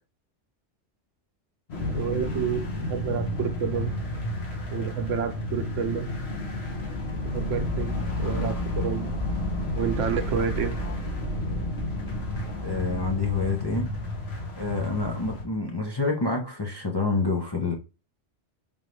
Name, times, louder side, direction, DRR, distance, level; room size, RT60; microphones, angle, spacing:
sound 1, 1.7-15.4, left 1 dB, 60° left, 1.4 m, -31 dB
voice 1, 1.9-3.9 4.7-6.1 7.2-7.9 8.2-9.1 9.7-10.8, right 7 dB, 85° right, 1.1 m, -29 dB
voice 2, 12.6-13.9 14.6-17.7, left 3 dB, 25° left, 0.6 m, -27 dB
3.8 x 3.6 x 3.1 m
omnidirectional pair, 1.2 m